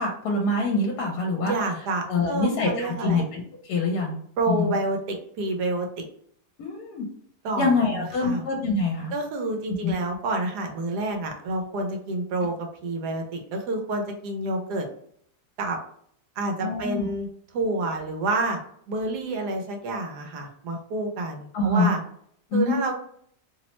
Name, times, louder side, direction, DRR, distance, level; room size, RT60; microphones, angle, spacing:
voice 1, 0.0-1.5 2.1-4.2 4.5-4.7 6.6-7.1 7.6-9.1 9.8-9.9 16.6-17.1 21.5-21.9 22.5-22.8, left 3 dB, 80° left, 0 dB, 1.1 m, -25 dB
voice 2, 1.4-3.2 4.4-6.0 7.4-8.4 9.1-14.9 15.6-15.8 16.4-18.6 18.9-22.0 22.5-22.9, right 2 dB, 85° right, 3 dB, 1.2 m, -28 dB
3.0 x 2.0 x 3.0 m, 0.65 s
omnidirectional pair, 1.7 m